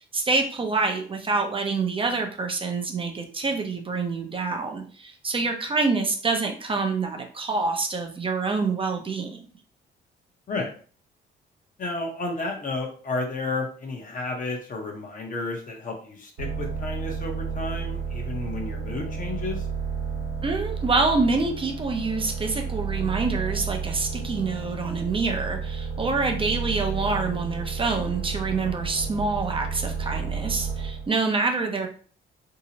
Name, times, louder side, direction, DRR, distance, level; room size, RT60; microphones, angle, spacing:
voice 1, 0.1-9.4 20.4-31.9, right 3 dB, 25° right, 3 dB, 0.5 m, -26 dB
voice 2, 11.8-19.7, left 3 dB, 40° left, 2 dB, 0.7 m, -32 dB
sound 1, 16.4-31.1, right 5 dB, 85° right, 0.9 m, -31 dB
2.7 x 2.0 x 2.7 m, 0.43 s
cardioid pair, 90°, 20 cm